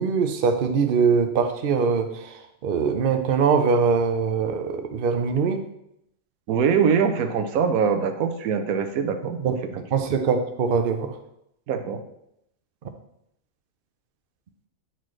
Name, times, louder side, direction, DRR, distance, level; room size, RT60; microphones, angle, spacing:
voice 1, 0.0-2.3 2.6-5.6 9.4-9.6 9.9-11.1, right 5 dB, 50° right, 7 dB, 0.7 m, -22 dB
voice 2, 6.5-9.4 9.7-9.8 11.7-12.0, right 6 dB, 90° right, 7 dB, 1.1 m, -23 dB
8.9 x 4.2 x 3.1 m, 0.77 s
omnidirectional pair, 1.4 m